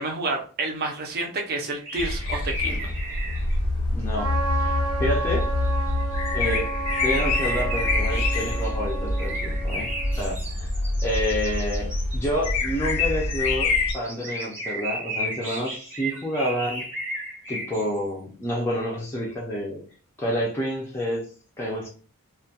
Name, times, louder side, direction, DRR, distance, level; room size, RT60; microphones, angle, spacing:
voice 1, 0.0-2.9, right 2 dB, 45° right, 2 dB, 0.5 m, -29 dB
sound 1, 1.7-3.6 5.1-5.6 5.9-6.2 6.9-18.0 19.1-19.2, right 1 dB, 10° right, 0.8 m, -34 dB
sound 2, 2.0-13.9, left 2 dB, 90° left, 0.5 m, -26 dB
voice 2, 3.9-5.5 6.3-6.7 7.0-9.9 10.2-10.7 11.0-16.9 17.5-19.8 20.2-21.2 21.6-21.9, equal, 10° left, -4 dB, 0.4 m, -29 dB
Trumpet, 4.1-10.4, right 3 dB, 80° right, 0.7 m, -32 dB
2.2 x 2.1 x 2.7 m, 0.40 s
head